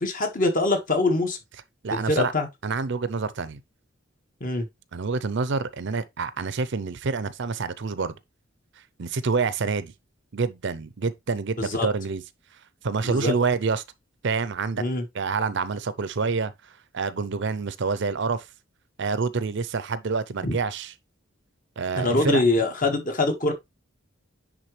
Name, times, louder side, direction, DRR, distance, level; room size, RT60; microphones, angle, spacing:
voice 1, 0.0-1.4 1.9-2.5 4.4-4.7 11.6-11.9 13.0-13.3 14.8-15.0 20.4-20.5 21.9-23.5, left 2 dB, 45° left, 1.6 m, -24 dB
voice 2, 1.8-2.3 2.6-3.6 4.9-8.1 9.0-9.9 10.3-12.2 12.8-13.8 14.2-14.8 15.1-16.5 16.9-18.5 19.0-20.9 21.8-22.4, right 4 dB, 60° right, 0.6 m, -27 dB
10.0 x 3.7 x 3.2 m
head